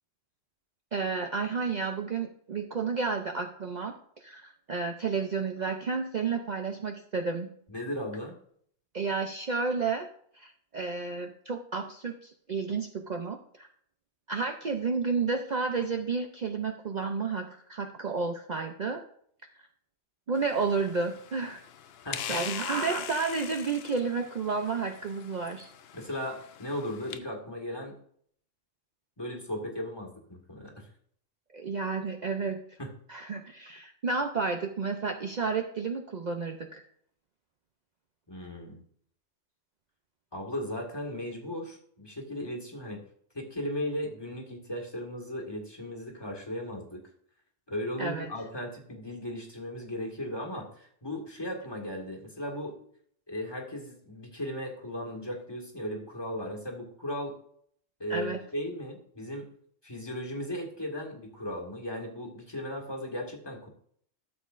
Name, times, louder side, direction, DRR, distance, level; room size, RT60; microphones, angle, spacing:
voice 1, 0.9-7.5 8.9-10.1 10.3-13.7 14.3-19.0 20.3-21.6 22.3-25.7 31.5-32.6 33.1-36.8 48.0-48.3 58.1-58.4, right 4 dB, 45° right, 3 dB, 0.7 m, -31 dB
voice 2, 7.7-8.4 22.0-22.5 25.9-27.9 29.2-30.9 32.8-32.9 38.3-38.8 40.3-43.0 43.3-47.0 47.7-52.8 53.3-57.3 58.0-59.5 59.8-63.7, left 1 dB, 20° left, 1 dB, 1.8 m, -36 dB
sound 1, 20.3-27.2, left 9 dB, 70° left, 0.8 m, -42 dB
12.5 x 7.4 x 2.5 m, 0.62 s
omnidirectional pair, 1.1 m